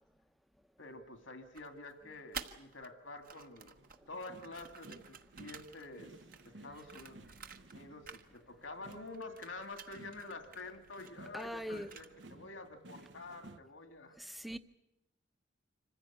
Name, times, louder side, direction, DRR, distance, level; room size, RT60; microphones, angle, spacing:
voice 1, 0.8-6.1 6.4-7.2 7.7-14.2, left 2 dB, 85° left, 2.4 m, -48 dB
sound 1, 1.5-2.9 3.2-7.8 8.0-8.7 8.9-12.3, right 6 dB, 45° right, 1.2 m, -51 dB
sound 2, 3.8-13.6, right 2 dB, 65° right, 0.9 m, -57 dB
voice 2, 11.3-12.0 14.2-14.6, equal, ahead, 0.7 m, -41 dB
26.0 x 15.5 x 8.7 m
head